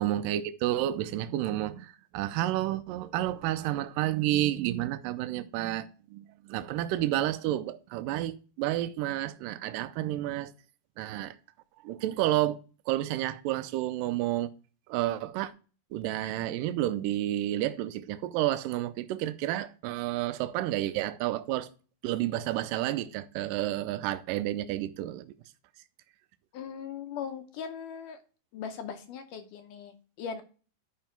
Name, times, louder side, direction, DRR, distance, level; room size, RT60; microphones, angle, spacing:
voice 1, 0.0-10.5 11.0-11.4 11.8-12.6 12.9-14.5 14.9-15.5 15.9-21.7 22.0-25.3, right 14 dB, 80° right, 2.1 m, -30 dB
voice 2, 26.5-28.2 28.5-30.4, left 7 dB, 75° left, 2.2 m, -39 dB
11.0 x 5.4 x 4.4 m
omnidirectional pair, 4.3 m